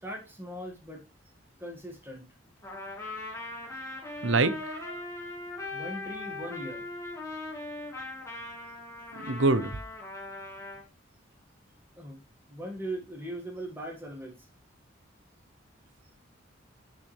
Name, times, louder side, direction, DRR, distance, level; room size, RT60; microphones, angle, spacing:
voice 1, 0.0-1.0 1.6-2.3 5.7-6.9 12.0-12.2 12.5-14.5, right 1 dB, 10° right, 2.2 m, -39 dB
Trumpet, 2.6-10.8, left 2 dB, 15° left, 3.1 m, -40 dB
voice 2, 4.2-5.0 9.2-9.8, right 3 dB, 80° right, 0.9 m, -26 dB
10.5 x 6.0 x 3.5 m
head